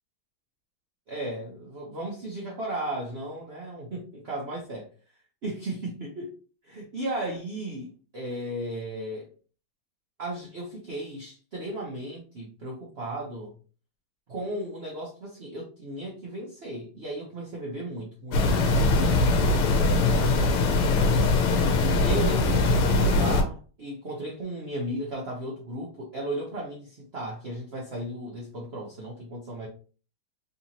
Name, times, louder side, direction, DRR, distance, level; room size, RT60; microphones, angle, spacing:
voice 1, 1.1-4.9 5.4-6.3 6.7-9.3 10.2-13.5 14.3-20.9 22.0-29.7, right 1 dB, 65° right, -3 dB, 0.6 m, -35 dB
sound 1, 18.3-23.4, left 2 dB, 90° left, 1.6 m, -22 dB
4.0 x 2.9 x 2.8 m, 0.37 s
omnidirectional pair, 2.3 m